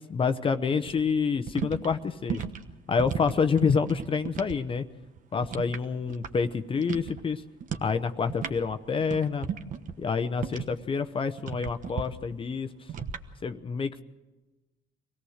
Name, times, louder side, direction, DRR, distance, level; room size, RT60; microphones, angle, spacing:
voice 1, 0.0-2.4 2.9-4.8 5.3-7.4 7.8-9.5 10.0-12.7 13.4-14.0, left 5 dB, 30° left, 10 dB, 0.8 m, -27 dB
sound 1, 0.8-4.6 4.9-6.5 6.8-7.2 7.6-7.9 8.2-10.9 11.4-12.1 12.9-13.2, right 7 dB, 50° right, 1.2 m, -35 dB
24.5 x 17.5 x 6.5 m, 1.1 s
cardioid pair, 110°, 17 cm